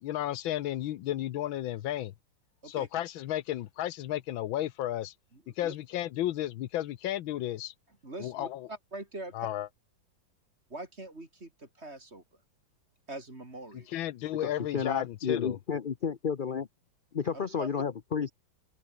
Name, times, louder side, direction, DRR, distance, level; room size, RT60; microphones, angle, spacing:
voice 1, 0.0-2.1 2.7-5.1 5.6-7.7 8.2-8.7 9.3-9.7 13.9-15.6, left 13 dB, 80° left, 1.6 m, -33 dB
voice 2, 5.3-5.8 8.0-9.5 10.7-12.2 13.1-13.9 17.3-17.7, right 2 dB, 30° right, 5.0 m, -43 dB
voice 3, 14.4-16.7 17.1-18.3, left 6 dB, 45° left, 0.6 m, -31 dB
open air
omnidirectional pair, 2.1 m